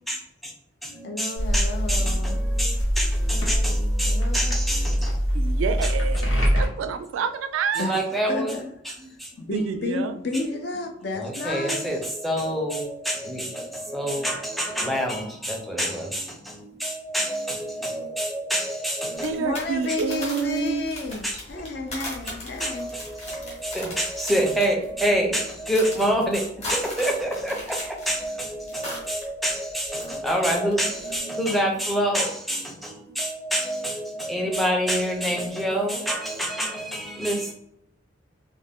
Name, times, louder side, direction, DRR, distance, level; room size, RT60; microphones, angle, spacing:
voice 1, 0.1-0.5 0.8-5.2 5.8-5.9 7.8-9.3 10.3-10.4 11.1-19.4 21.2-21.4 22.6-37.5, equal, ahead, -1 dB, 0.5 m, -27 dB
voice 2, 1.0-2.4 4.0-4.5 7.8-7.9 8.3-8.7 9.4-11.9 19.4-22.9, left 2 dB, 55° left, 4 dB, 0.4 m, -31 dB
sound 1, 1.4-6.7, equal, 85° left, 0.9 m, -23 dB
voice 3, 5.3-8.0 9.5-10.2 19.2-20.9, right 6 dB, 90° right, 9 dB, 0.3 m, -28 dB
sound 2, 19.1-29.2 29.5-30.7 31.0-31.2, left 1 dB, 30° left, 0.9 m, -38 dB
2.5 x 2.1 x 3.4 m, 0.75 s
head